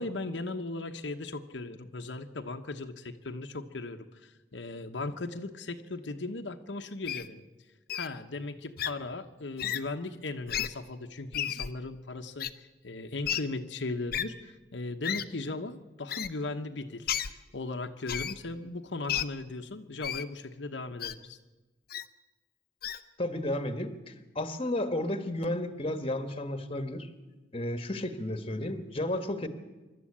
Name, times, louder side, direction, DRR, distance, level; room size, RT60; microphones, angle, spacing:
voice 1, 0.0-7.4 7.9-21.4, left 2 dB, 80° left, 5 dB, 1.1 m, -38 dB
Wild animals, 7.1-7.3 7.9-8.1 8.8-8.9 9.6-9.8 10.5-10.7 11.3-11.7 12.4-12.5 13.2-13.4 14.1-14.2 15.0-15.2 16.1-16.3 17.1-17.3 18.1-18.3 19.1-19.2 20.0-20.2 21.0-21.1 21.9-22.0 22.8-23.0, left 10 dB, 55° left, 0.8 m, -32 dB
voice 2, 23.2-27.1 27.5-29.5, left 1 dB, 30° left, 9 dB, 1.5 m, -32 dB
25.0 x 12.5 x 8.6 m, 1.2 s
head